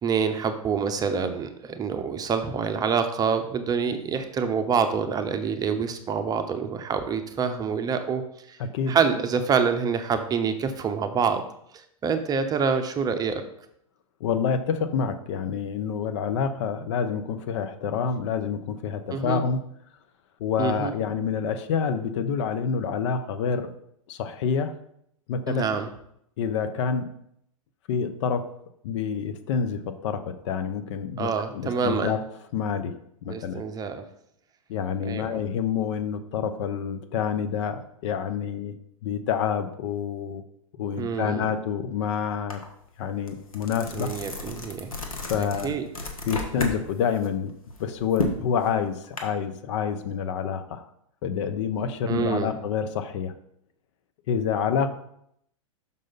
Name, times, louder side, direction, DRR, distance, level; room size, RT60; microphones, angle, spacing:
voice 1, 0.0-8.2 8.5-8.6 8.9-11.4 11.7-13.4 19.1-19.4 20.6-20.9 25.5-25.9 31.2-32.2 33.3-34.0 35.0-35.4 41.0-41.5 43.9-44.9 45.4-45.9 52.1-52.5, right 6 dB, 20° right, 8 dB, 0.7 m, -26 dB
voice 2, 8.6-9.0 14.2-19.6 20.4-23.7 24.1-24.7 25.3-25.6 26.4-27.1 27.9-28.4 28.8-32.2 32.5-32.9 33.2-33.6 34.7-38.7 39.0-40.4 40.8-42.6 43.0-44.1 45.2-45.7 46.3-47.5 47.8-50.8 51.2-53.3 54.3-54.9, left 7 dB, 60° left, 10 dB, 0.7 m, -27 dB
sound 1, 42.5-42.6 43.0-46.8 47.1-49.2, left 2 dB, 85° left, 1.3 m, -32 dB
6.4 x 5.4 x 4.0 m, 0.73 s
hypercardioid pair, 105°, 17 cm